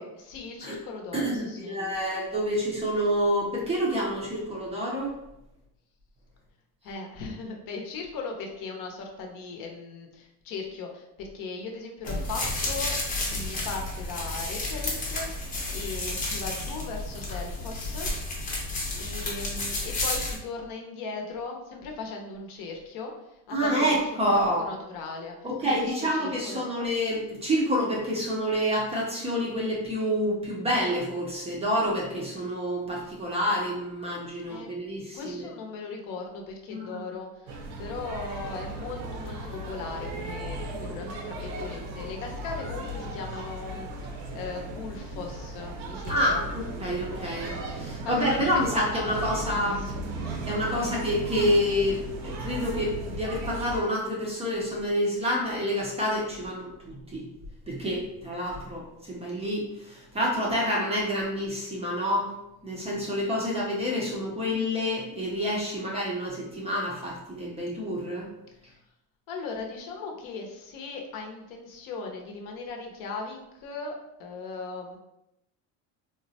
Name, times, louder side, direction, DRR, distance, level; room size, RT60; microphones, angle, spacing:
voice 1, 0.0-1.8 6.8-18.1 19.0-25.4 25.6-26.6 34.5-34.7 35.1-46.4 48.3-50.2 68.6-68.8 69.3-73.9 74.2-75.0, left 4 dB, 55° left, 2 dB, 0.7 m, -38 dB
voice 2, 1.1-5.1 23.5-24.6 25.4-35.3 36.7-37.0 46.1-49.8 50.5-57.2 57.7-62.3 62.6-68.3, equal, 15° right, -4 dB, 0.4 m, -28 dB
sound 1, 12.0-20.3, left 2 dB, 20° left, 0.7 m, -31 dB
sound 2, 37.5-53.8, right 1 dB, 75° right, 0.8 m, -36 dB
3.8 x 2.1 x 2.7 m, 0.86 s
cardioid pair, 155°, 39 cm